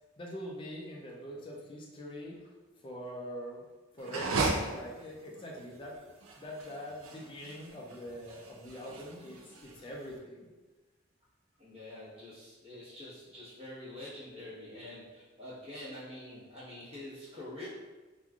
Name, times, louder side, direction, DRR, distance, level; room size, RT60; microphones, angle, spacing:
voice 1, 0.2-2.4 2.8-3.6 3.9-6.0 6.4-10.5, equal, 25° left, -2 dB, 0.3 m, -43 dB
sound 1, 4.0-10.1, right 3 dB, 80° right, 0.4 m, -36 dB
voice 2, 11.6-17.7, left 1 dB, 30° right, -10 dB, 1.1 m, -46 dB
3.0 x 2.4 x 2.3 m, 1.3 s
head